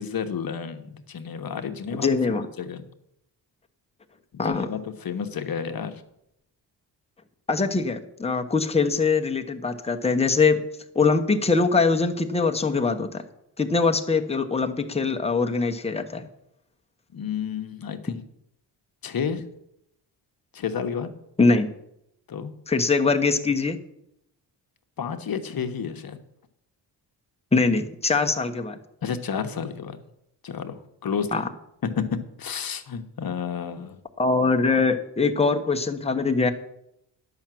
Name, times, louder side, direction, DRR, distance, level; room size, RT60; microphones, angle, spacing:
voice 1, 0.0-2.8 4.3-6.0 17.1-18.2 19.0-19.4 20.5-21.1 22.3-22.5 25.0-26.2 29.0-30.0 30.4-31.4 31.8-34.0, left 7 dB, 50° left, 8 dB, 1.1 m, -31 dB
voice 2, 2.0-2.5 4.4-4.7 7.5-10.6 10.9-13.2 13.6-16.2 21.4-21.7 22.7-23.8 27.5-28.8 31.3-31.5 34.2-36.5, left 4 dB, 15° left, 4 dB, 1.0 m, -22 dB
10.5 x 5.8 x 7.6 m, 0.79 s
cardioid pair, 90°, 44 cm